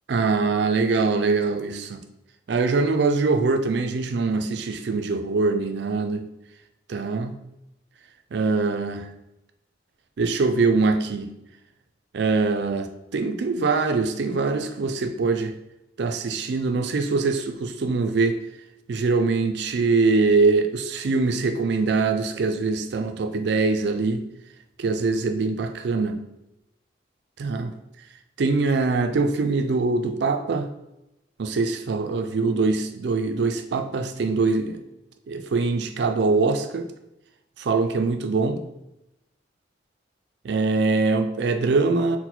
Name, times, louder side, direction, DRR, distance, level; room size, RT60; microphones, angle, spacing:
voice 1, 0.1-2.0 2.5-6.3 6.9-7.4 8.3-9.1 10.2-11.3 12.1-15.5 16.0-18.4 18.9-24.2 24.8-26.2 27.4-27.7 28.4-30.7 31.4-34.8 35.3-36.9 37.6-38.6 40.4-42.2, right 3 dB, 65° right, 7 dB, 0.4 m, -23 dB
4.1 x 2.1 x 4.2 m, 0.90 s
head